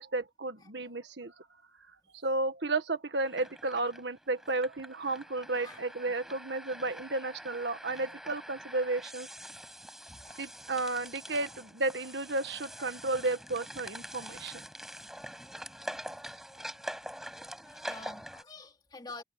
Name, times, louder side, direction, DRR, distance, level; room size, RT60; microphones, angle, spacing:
voice 1, 0.0-1.3 2.2-9.3 10.4-14.6, right 2 dB, 75° right, 1.6 m, -33 dB
sound 1, 3.1-18.4, equal, ahead, 5.5 m, -45 dB
voice 2, 10.1-10.6 12.3-12.4 12.8-12.9 13.2-13.3 15.6-15.7 17.4-19.2, left 3 dB, 25° left, 3.1 m, -49 dB
open air
head